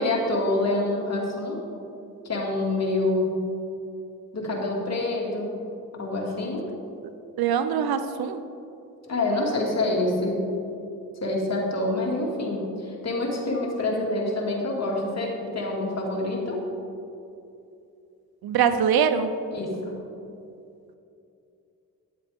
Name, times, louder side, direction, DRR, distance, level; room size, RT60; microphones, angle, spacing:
voice 1, 0.0-1.6 2.2-3.3 4.3-5.5 6.0-6.6 9.1-10.4 11.2-16.6 19.5-20.0, left 2 dB, 45° left, -1 dB, 2.2 m, -26 dB
voice 2, 7.4-8.4 18.4-19.3, right 7 dB, 75° right, 10 dB, 0.7 m, -23 dB
10.0 x 7.5 x 3.6 m, 2.6 s
cardioid pair, 55°, 37 cm